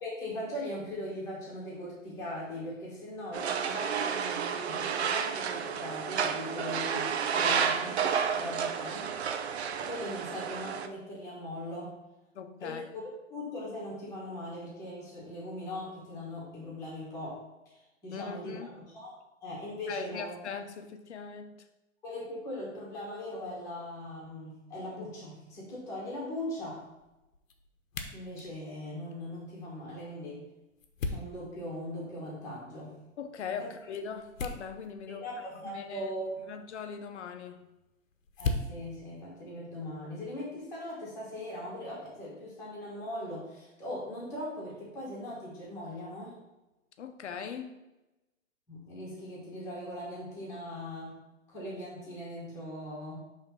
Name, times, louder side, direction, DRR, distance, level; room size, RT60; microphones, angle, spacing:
voice 1, 0.0-7.9 8.2-9.1 9.8-11.9 12.6-13.0 13.3-17.4 18.0-18.6 18.9-19.1 19.4-20.4 22.0-26.8 28.1-30.4 31.1-33.0 33.6-33.7 35.2-36.5 38.4-46.3 48.7-51.2 51.5-53.2, left 1 dB, 5° left, -7 dB, 1.4 m, -40 dB
sound 1, 3.3-10.9, right 7 dB, 55° right, 0.6 m, -31 dB
voice 2, 7.4-7.8 12.3-12.9 18.1-18.7 19.9-21.6 33.2-35.3 35.6-36.1 36.5-37.6 47.0-47.8, left 6 dB, 55° left, 7 dB, 0.8 m, -40 dB
sound 2, 25.4-40.3, left 3 dB, 80° left, 1.0 m, -43 dB
5.6 x 3.6 x 5.7 m, 0.99 s
hypercardioid pair, 175°, 39 cm